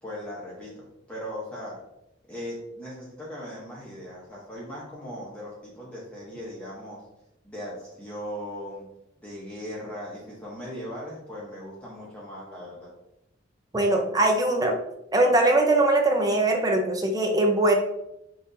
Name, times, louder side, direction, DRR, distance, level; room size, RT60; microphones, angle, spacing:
voice 1, 0.0-1.8 2.3-7.0 7.4-8.8 9.2-12.9, equal, 5° left, -7 dB, 0.9 m, -38 dB
voice 2, 13.7-14.8 15.1-17.8, right 2 dB, 20° right, 3 dB, 0.5 m, -21 dB
5.8 x 2.5 x 2.6 m, 0.85 s
head